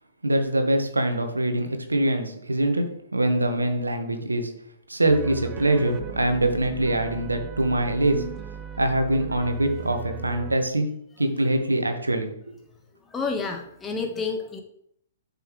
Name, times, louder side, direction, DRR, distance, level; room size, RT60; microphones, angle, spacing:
voice 1, 0.2-2.8 3.1-4.5 4.9-8.2 8.8-10.9 11.2-12.3, right 1 dB, 85° right, 6 dB, 1.2 m, -23 dB
sound 1, 5.1-10.6, right 8 dB, 20° right, 0.5 m, -38 dB
voice 2, 13.1-14.6, left 4 dB, 15° left, 3 dB, 1.2 m, -29 dB
11.0 x 5.5 x 3.1 m, 0.71 s
figure-of-eight pair, 115°, 0 cm